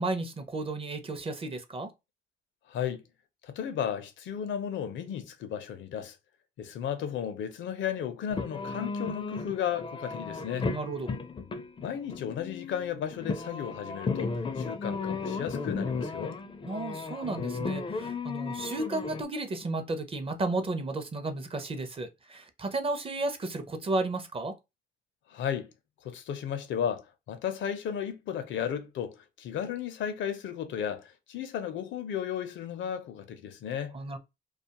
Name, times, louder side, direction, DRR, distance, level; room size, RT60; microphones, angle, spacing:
voice 1, 0.0-1.9 10.6-11.1 16.7-24.5 33.9-34.2, right 2 dB, 30° right, 0.5 m, -33 dB
voice 2, 2.7-3.0 3.4-6.2 6.6-10.7 11.8-16.4 25.3-25.7 26.0-34.0, left 9 dB, 75° left, 0.5 m, -34 dB
sound 1, 8.3-19.2, left 4 dB, 25° left, 0.4 m, -35 dB
2.4 x 2.3 x 2.8 m
cardioid pair, 90°, 20 cm